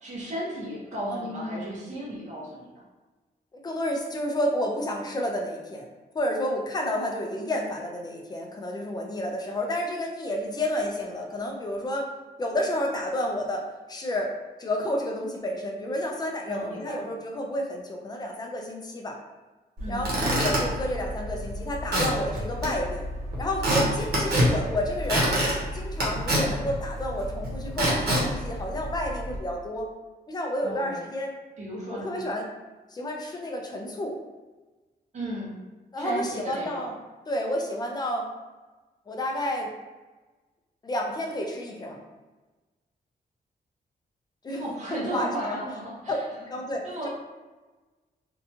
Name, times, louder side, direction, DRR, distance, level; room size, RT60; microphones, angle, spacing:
voice 1, 0.0-2.8 16.5-17.1 19.8-20.1 30.6-31.0 31.6-32.2 35.1-35.5 36.0-36.9 44.5-46.2 46.8-47.1, right 1 dB, 45° right, -6 dB, 0.8 m, -35 dB
voice 2, 1.1-1.7 3.6-5.9 6.1-12.1 12.4-14.3 14.6-19.2 19.9-23.0 23.4-29.9 30.3-31.3 31.9-32.5 32.9-34.2 35.9-36.9 37.3-38.3 39.1-39.7 40.8-42.0 44.4-44.6 44.9-45.6 46.1-46.2 46.5-47.1, left 1 dB, 25° left, 1 dB, 0.4 m, -30 dB
Squeak / Wood, 19.8-29.4, right 1 dB, 90° right, 0.8 m, -27 dB
2.7 x 2.2 x 2.7 m, 1.2 s
wide cardioid pair, 155°, 17 cm